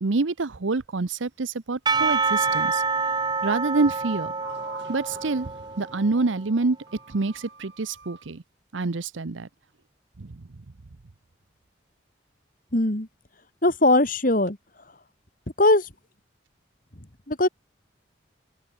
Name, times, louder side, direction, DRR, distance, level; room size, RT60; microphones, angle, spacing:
voice 1, 0.0-2.8 3.4-4.3 4.9-5.5 5.8-6.8 7.1-8.4 8.7-9.5 10.2-10.4, right 3 dB, 90° right, 0.8 m, -26 dB
Percussion / Church bell, 1.9-6.3, right 4 dB, 25° right, 2.2 m, -27 dB
Sliding door, 2.5-2.9 3.9-6.4 6.9-8.3, right 3 dB, 65° right, 6.3 m, -46 dB
voice 2, 12.7-13.1 13.6-14.6 15.6-15.9 17.3-17.5, left 2 dB, 45° left, 2.9 m, -20 dB
open air
head